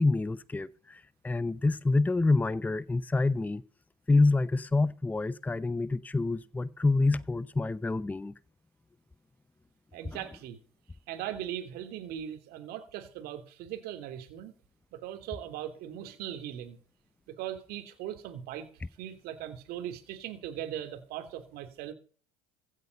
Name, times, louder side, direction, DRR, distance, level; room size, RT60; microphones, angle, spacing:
voice 1, 0.0-3.6 4.1-8.3, left 3 dB, 10° left, 0.7 m, -27 dB
voice 2, 9.9-10.6 11.1-14.5 14.9-16.8 17.3-18.7 19.0-21.9, right 11 dB, 55° right, 3.0 m, -39 dB
15.5 x 8.5 x 5.3 m
supercardioid pair, 100°, 19 cm